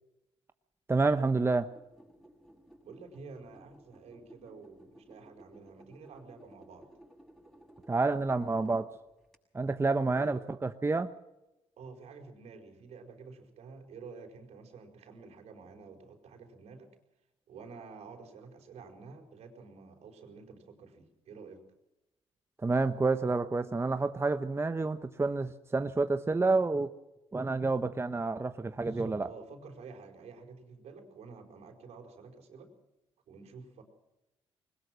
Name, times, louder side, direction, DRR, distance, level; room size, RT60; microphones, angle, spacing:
voice 1, 0.9-1.7 7.9-8.9 9.5-11.1 22.6-26.9 27.3-29.3, right 3 dB, 20° right, 9 dB, 1.0 m, -29 dB
sound 1, 1.6-9.4, right 1 dB, ahead, 7.2 m, -57 dB
voice 2, 2.8-6.9 10.0-10.4 11.8-16.9 17.5-21.6 28.7-32.7 33.3-33.8, right 4 dB, 75° right, 4 dB, 4.7 m, -50 dB
21.0 x 19.5 x 6.3 m, 0.95 s
supercardioid pair, 70°, 11 cm